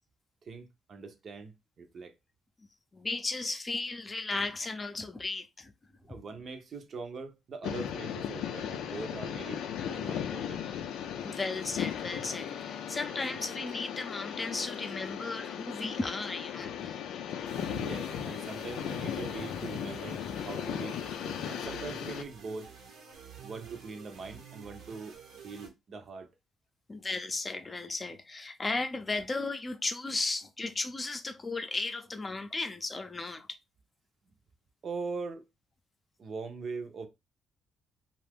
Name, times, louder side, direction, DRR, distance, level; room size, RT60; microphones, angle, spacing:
voice 1, 0.4-2.1 6.1-10.6 17.8-21.0 21.5-22.7 23.4-25.2 25.4-26.3 34.8-35.4 36.2-37.1, right 4 dB, 55° right, 0.7 m, -42 dB
voice 2, 2.9-5.7 11.2-17.0 26.9-33.5, left 3 dB, 25° left, 0.6 m, -35 dB
sound 1, 7.6-22.2, left 9 dB, 85° left, 0.4 m, -37 dB
sound 2, 17.4-25.7, right 7 dB, 85° right, 1.1 m, -49 dB
2.7 x 2.4 x 3.4 m
cardioid pair, 90°, 0 cm